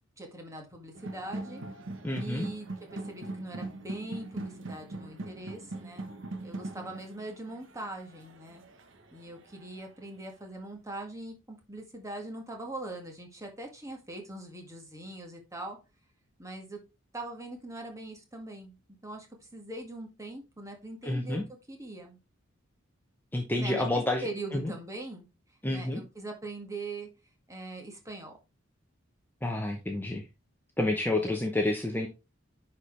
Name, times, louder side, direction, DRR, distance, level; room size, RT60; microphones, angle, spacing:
voice 1, 0.2-1.6 2.2-6.1 6.4-8.6 9.1-15.8 16.4-16.8 17.1-18.8 19.0-19.3 19.5-21.4 21.7-22.2 23.6-25.2 25.7-27.1 27.5-28.4 31.2-31.3, right 2 dB, 15° right, 2 dB, 1.8 m, -41 dB
sound 1, 0.9-9.8, right 2 dB, 65° right, 1.1 m, -41 dB
voice 2, 2.0-2.5 21.0-21.4 23.3-24.7 25.6-26.0 29.4-30.2 30.8-32.1, left 2 dB, 10° left, 2 dB, 0.8 m, -29 dB
9.7 x 4.4 x 3.2 m, 0.27 s
head